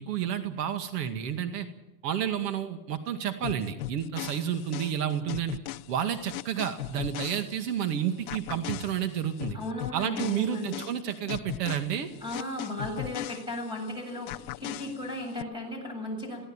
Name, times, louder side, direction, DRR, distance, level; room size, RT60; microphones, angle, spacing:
voice 1, 0.0-1.7 2.0-5.6 5.9-9.6 9.9-12.1, right 9 dB, 80° right, 7 dB, 2.2 m, -30 dB
sound 1, 3.4-7.9 8.3-13.9 14.3-15.4, left 18 dB, 60° left, 0.8 m, -39 dB
voice 2, 9.5-10.7 12.2-16.5, left 1 dB, 10° right, 3 dB, 7.8 m, -35 dB
21.5 x 17.0 x 8.9 m, 0.98 s
supercardioid pair, 165°, 48 cm